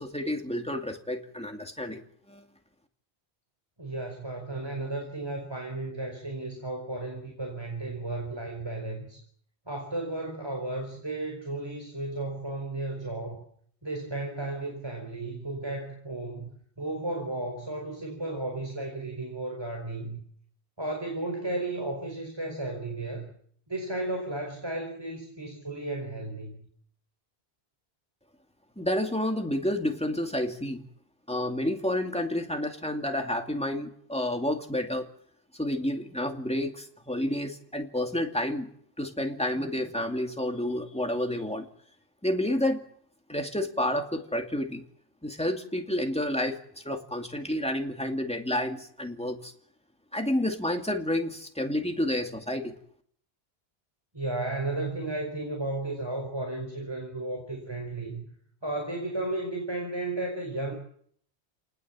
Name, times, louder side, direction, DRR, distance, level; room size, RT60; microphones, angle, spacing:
voice 1, 0.0-2.0 2.3-2.4 28.8-30.8 31.3-35.1 35.5-38.7 39.0-41.7 42.2-42.8 43.3-44.8 45.2-49.5 50.1-52.7, left 1 dB, 5° left, 3 dB, 2.5 m, -30 dB
voice 2, 3.8-9.2 9.7-13.4 13.8-16.5 16.8-20.2 20.8-23.3 23.7-26.7 39.5-39.7 54.1-58.2 58.6-60.7, right 2 dB, 25° right, 3 dB, 4.8 m, -34 dB
29.5 x 19.5 x 7.5 m, 0.64 s
omnidirectional pair, 1.1 m